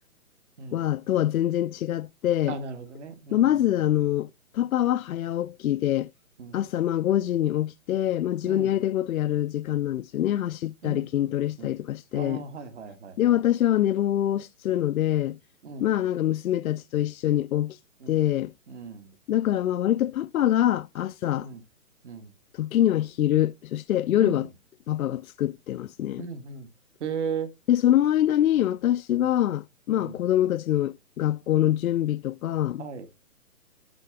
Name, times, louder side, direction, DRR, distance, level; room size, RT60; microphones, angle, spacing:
voice 1, 0.7-2.6 3.3-6.1 6.5-12.4 13.2-15.4 15.8-17.8 18.1-18.5 19.3-21.5 22.5-24.5 24.9-26.3 27.7-32.9, left 12 dB, 75° left, 0.5 m, -25 dB
voice 2, 2.4-3.7 6.4-6.6 8.4-8.7 10.8-11.8 12.1-13.4 15.6-15.9 18.0-18.2 18.7-19.1 21.4-21.6 22.0-22.3 24.2-24.4 26.2-26.7 27.0-27.5 29.1-29.3 29.9-30.2 32.8-33.1, right 6 dB, 55° right, 1.6 m, -37 dB
11.0 x 3.8 x 3.3 m
hypercardioid pair, 155°, 43 cm